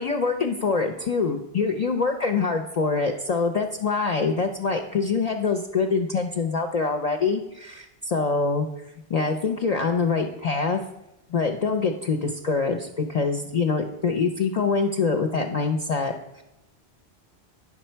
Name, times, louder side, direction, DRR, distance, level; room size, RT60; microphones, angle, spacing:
voice 1, 0.0-8.7 9.1-10.8 11.3-16.1, left 4 dB, 50° left, 4 dB, 0.5 m, -24 dB
9.3 x 6.1 x 4.4 m, 0.89 s
omnidirectional pair, 1.1 m